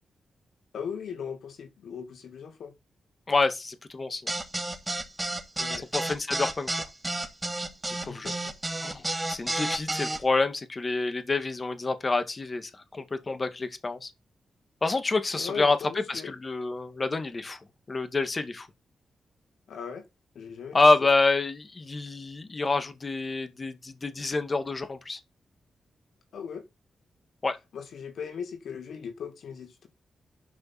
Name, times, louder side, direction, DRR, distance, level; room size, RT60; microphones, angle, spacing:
voice 1, 0.7-2.7 5.6-5.9 7.9-8.5 15.4-16.3 19.7-20.0 20.4-20.8 26.3-26.6 27.7-29.9, left 7 dB, 75° left, 1.8 m, -38 dB
voice 2, 3.3-4.2 5.9-6.9 8.0-8.3 8.8-14.1 14.8-15.8 16.1-17.6 17.9-18.7 20.7-25.2 27.4-27.6, left 3 dB, 40° left, 2.1 m, -27 dB
sound 1, 4.3-10.2, right 2 dB, 20° right, 3.0 m, -31 dB
11.5 x 5.4 x 4.4 m
supercardioid pair, 40°, 0 cm